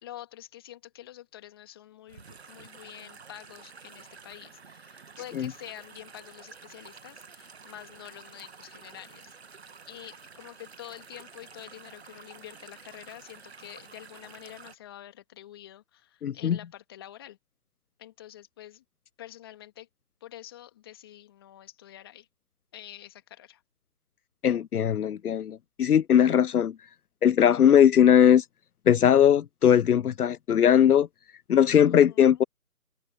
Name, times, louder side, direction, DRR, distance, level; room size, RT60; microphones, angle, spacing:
voice 1, 0.0-9.4 9.9-17.4 18.0-18.8 19.2-19.9 20.2-22.3 22.7-23.6 31.9-32.4, left 12 dB, 15° left, 2.6 m, -47 dB
sound 1, 2.1-14.8, right 5 dB, 45° right, 1.5 m, -50 dB
voice 2, 16.2-16.6 24.4-26.7 27.2-28.4 28.9-31.1 31.5-32.4, left 9 dB, 80° left, 0.6 m, -20 dB
open air
figure-of-eight pair, 165°, 45 cm